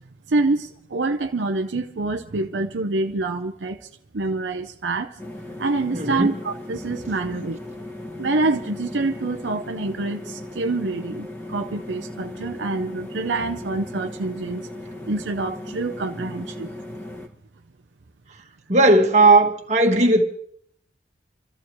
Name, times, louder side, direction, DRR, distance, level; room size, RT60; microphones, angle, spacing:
voice 1, 0.3-3.8 4.1-5.2 5.6-7.6 8.2-14.7 15.1-16.7, right 3 dB, 80° right, 0.7 m, -26 dB
sound 1, 5.2-17.3, left 1 dB, 10° left, 1.5 m, -37 dB
voice 2, 5.9-6.3 18.7-20.2, right 2 dB, 40° right, 1.7 m, -16 dB
28.0 x 14.0 x 3.1 m
head